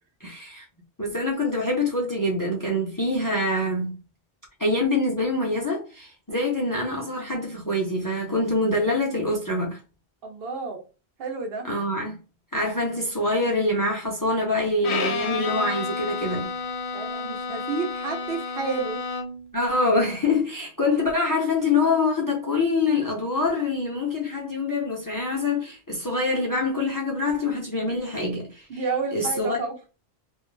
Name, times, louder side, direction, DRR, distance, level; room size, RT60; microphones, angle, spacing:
voice 1, 0.2-0.6 1.0-4.0 4.6-9.8 11.7-12.2 12.5-16.4 19.5-28.7 29.1-29.6, left 2 dB, 25° left, 0.5 m, -25 dB
voice 2, 10.2-10.8 11.2-11.7 16.9-19.0 28.7-29.8, right 4 dB, 65° right, 0.8 m, -30 dB
Bowed string instrument, 14.8-19.5, left 5 dB, 80° left, 0.8 m, -30 dB
2.4 x 2.0 x 3.1 m
omnidirectional pair, 1.1 m